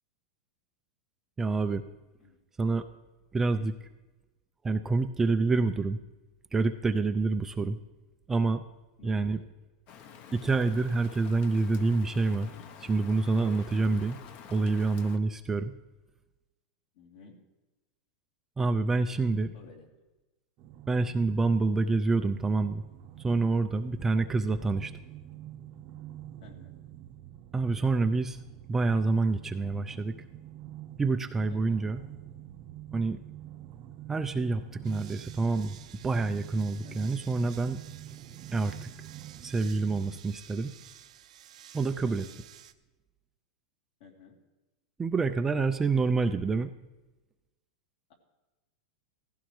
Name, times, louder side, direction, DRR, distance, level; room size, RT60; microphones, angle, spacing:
voice 1, 1.4-1.8 2.6-2.9 3.3-3.7 4.6-6.0 6.5-7.8 8.3-8.6 9.0-9.4 10.3-12.5 12.8-14.2 14.5-15.7 18.6-19.5 20.9-22.8 23.2-24.9 27.5-28.4 28.7-30.2 31.0-32.0 32.9-33.2 34.1-35.8 36.0-37.8 38.5-39.1 39.4-40.8 41.7-42.3 45.0-46.7, right 3 dB, 10° right, 8 dB, 0.3 m, -27 dB
voice 2, 9.0-9.5 16.9-17.4 19.2-19.9 24.1-24.3 26.4-26.8 31.5-31.8 36.8-37.2 42.0-42.4 44.0-44.4 45.4-45.9, left 5 dB, 60° left, 0 dB, 3.1 m, -53 dB
Rain, 9.9-15.2, left 7 dB, 35° left, 0.8 m, -49 dB
sound 1, 20.6-40.2, right 12 dB, 35° right, 0.7 m, -47 dB
sound 2, 34.8-42.7, right 11 dB, 85° right, 0.7 m, -52 dB
16.5 x 15.5 x 3.2 m, 1.1 s
supercardioid pair, 160°, 4 cm